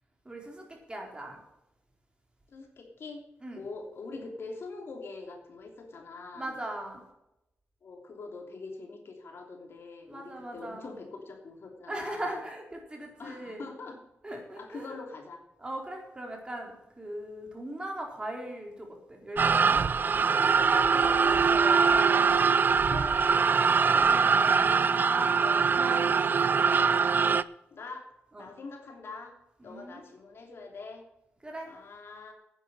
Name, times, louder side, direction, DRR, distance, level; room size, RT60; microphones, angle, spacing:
voice 1, 0.3-1.4 3.4-3.6 6.3-7.0 10.1-10.9 11.9-13.7 14.2-14.9 15.6-19.8 20.3-20.8 21.5-21.8 23.7-24.4 24.9-25.3 25.7-26.6 28.3-28.5 29.6-30.0 31.4-31.7, right 1 dB, 20° right, 1 dB, 4.2 m, -39 dB
voice 2, 2.5-3.2 3.5-6.5 7.8-12.4 13.2-14.0 14.6-15.4 20.7-21.5 22.1-23.2 25.4-25.7 27.7-28.1 28.4-29.3 29.6-31.0 31.7-32.3, left 3 dB, 65° left, 3 dB, 3.0 m, -43 dB
sound 1, 19.4-27.4, right 5 dB, 50° right, 0.5 m, -23 dB
10.0 x 9.6 x 7.8 m, 0.88 s
cardioid pair, 85°, 4 cm